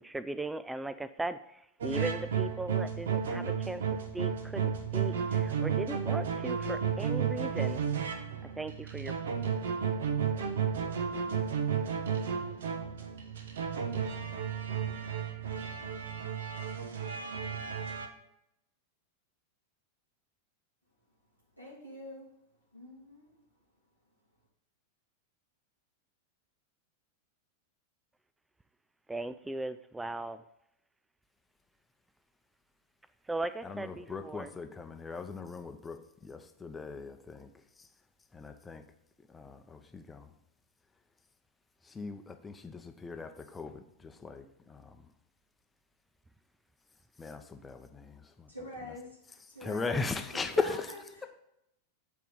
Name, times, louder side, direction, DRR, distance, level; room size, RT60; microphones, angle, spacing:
voice 1, 0.0-3.8 4.1-7.8 8.4-9.1 29.1-30.4 33.3-34.5, right 2 dB, 10° right, 13 dB, 0.3 m, -38 dB
sound 1, 1.8-18.1, right 7 dB, 65° right, 1.0 m, -33 dB
voice 2, 21.6-22.3 22.7-23.3 48.5-49.2 49.5-50.0 50.3-51.3, left 1 dB, 90° right, -4 dB, 3.1 m, -45 dB
voice 3, 33.7-37.5 38.3-38.8 39.3-40.3 41.9-44.9 47.2-48.5 49.6-50.8, left 4 dB, 15° left, 7 dB, 0.7 m, -38 dB
9.2 x 4.7 x 5.5 m, 0.82 s
figure-of-eight pair, 90°, 0 cm